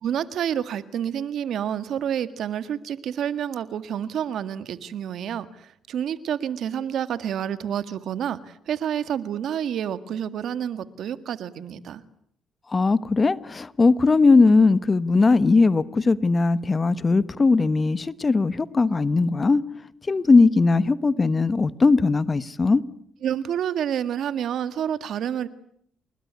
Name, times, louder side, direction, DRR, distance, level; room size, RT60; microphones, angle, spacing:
voice 1, 0.0-12.0 23.2-25.5, right 9 dB, 70° right, 13 dB, 1.8 m, -29 dB
voice 2, 12.7-19.6 20.1-22.8, left 3 dB, 30° left, 16 dB, 1.3 m, -19 dB
29.5 x 20.5 x 9.6 m, 0.68 s
cardioid pair, 90°, 0 cm